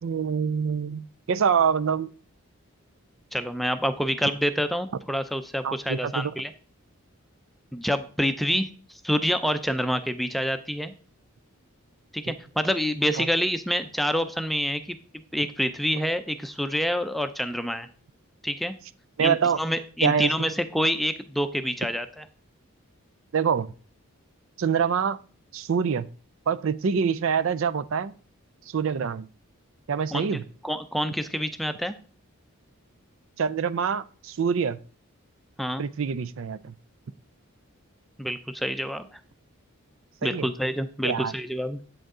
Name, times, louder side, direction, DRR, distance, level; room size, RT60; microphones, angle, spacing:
voice 1, 0.0-2.1 5.6-6.3 13.2-13.3 19.2-19.6 20.0-20.3 23.3-23.7 24.6-25.2 25.5-26.1 26.5-28.1 28.7-29.3 29.9-30.4 33.4-34.8 35.8-36.7 40.2-40.5 41.0-41.3, right 6 dB, 60° right, 14 dB, 0.4 m, -25 dB
voice 2, 3.3-6.5 7.7-10.9 12.1-15.0 15.3-17.9 18.4-18.8 19.2-22.2 30.1-30.4 30.6-31.9 35.6-35.8 38.2-39.2 40.2-41.8, equal, ahead, 9 dB, 0.5 m, -27 dB
8.8 x 7.9 x 3.7 m, 0.40 s
head